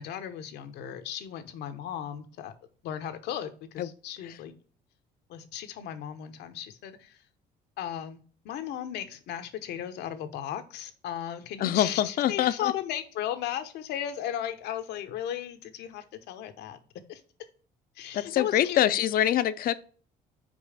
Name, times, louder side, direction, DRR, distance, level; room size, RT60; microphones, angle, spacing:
voice 1, 0.0-2.5 2.8-4.5 5.3-7.2 7.8-8.2 8.4-16.8 17.1-17.2 18.0-18.9, left 10 dB, 80° left, 0.9 m, -36 dB
voice 2, 11.6-12.5 18.1-19.7, left 12 dB, 60° left, 0.5 m, -24 dB
5.4 x 4.9 x 4.9 m
cardioid pair, 110°, 17 cm